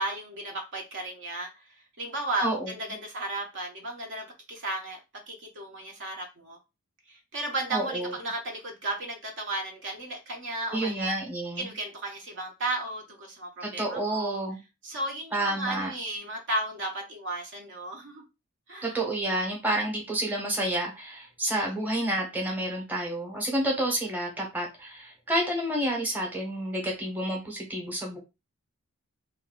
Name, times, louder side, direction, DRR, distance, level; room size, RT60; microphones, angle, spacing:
voice 1, 0.0-5.0 5.3-6.6 7.1-11.1 11.6-14.4 14.8-18.2 18.7-18.9 21.6-21.7, right 2 dB, 55° right, 0.8 m, -34 dB
voice 2, 2.4-2.7 7.7-8.1 10.7-11.7 13.6-14.6 15.3-15.9 18.8-28.2, right 1 dB, 10° right, 0.9 m, -29 dB
2.6 x 2.2 x 3.7 m
head